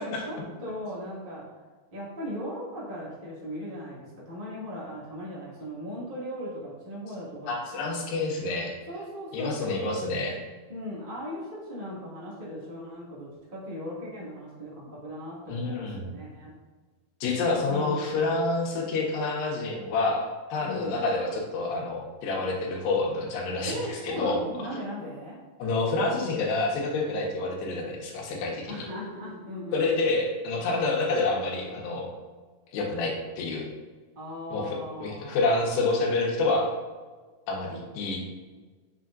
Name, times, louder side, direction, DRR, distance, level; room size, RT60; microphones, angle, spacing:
voice 1, 0.0-1.5 1.9-8.0 8.9-10.0 10.7-16.5 17.6-18.2 20.6-21.0 23.6-25.4 28.7-30.0 34.1-35.4, equal, 30° right, -8 dB, 1.0 m, -38 dB
voice 2, 7.5-8.8 9.3-10.4 15.5-16.1 17.2-24.4 25.6-28.9 29.7-32.1 32.7-33.7 34.5-36.7 37.5-38.2, left 3 dB, 90° left, -2 dB, 3.4 m, -28 dB
8.3 x 6.3 x 2.6 m, 1.4 s
omnidirectional pair, 4.7 m